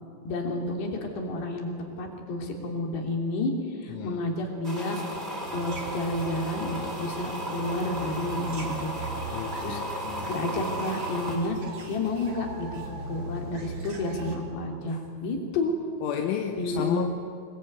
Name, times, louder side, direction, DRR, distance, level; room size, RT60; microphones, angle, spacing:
voice 1, 0.2-3.5 3.8-5.0 5.5-8.9 9.6-9.8 10.3-11.6 11.9-15.7 16.6-17.0, left 2 dB, 65° left, 2 dB, 5.1 m, -30 dB
voice 2, 3.9-4.2 9.3-10.4 16.0-17.1, left 9 dB, 85° left, 4 dB, 3.7 m, -32 dB
sound 1, 4.6-11.4, equal, 10° right, 5.4 m, -35 dB
sound 2, 5.4-14.4, right 3 dB, 35° right, 3.1 m, -40 dB
25.0 x 22.5 x 9.5 m, 2.4 s
omnidirectional pair, 5.5 m